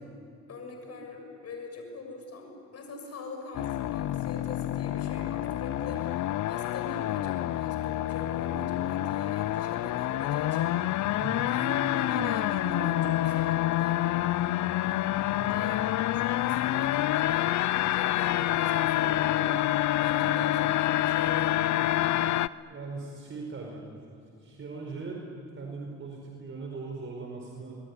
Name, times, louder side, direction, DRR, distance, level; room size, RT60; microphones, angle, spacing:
voice 1, 0.5-10.8 11.5-14.1 15.4-15.8 16.1-19.7 20.0-22.0, left 2 dB, 55° left, 4 dB, 7.0 m, -42 dB
sound 1, 3.5-22.5, left 14 dB, 70° left, 0.6 m, -27 dB
voice 2, 11.2-11.5 15.4-15.7 22.6-24.0 24.4-25.2 25.6-27.8, right 4 dB, 40° right, 0 dB, 4.9 m, -39 dB
27.0 x 20.5 x 9.9 m, 2.6 s
cardioid pair, 90°, 30 cm